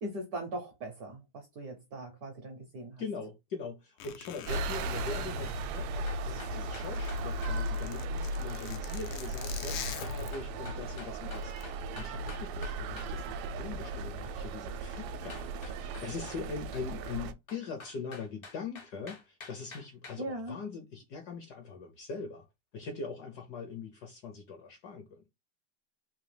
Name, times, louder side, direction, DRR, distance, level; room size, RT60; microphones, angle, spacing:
voice 1, 0.0-3.0 20.2-20.6, right 1 dB, 65° right, 0.9 m, -40 dB
voice 2, 3.0-22.5 22.7-25.2, left 4 dB, 65° left, 1.0 m, -42 dB
Zipper (clothing), 4.0-6.4 6.7-10.7 11.3-11.6, left 8 dB, 90° left, 1.6 m, -45 dB
sound 1, 4.5-17.3, right 2 dB, 80° right, 1.4 m, -36 dB
sound 2, 6.1-7.6 10.0-13.1 15.3-16.4 17.5-20.2, left 3 dB, 50° left, 0.6 m, -48 dB
3.8 x 2.7 x 3.2 m
omnidirectional pair, 2.4 m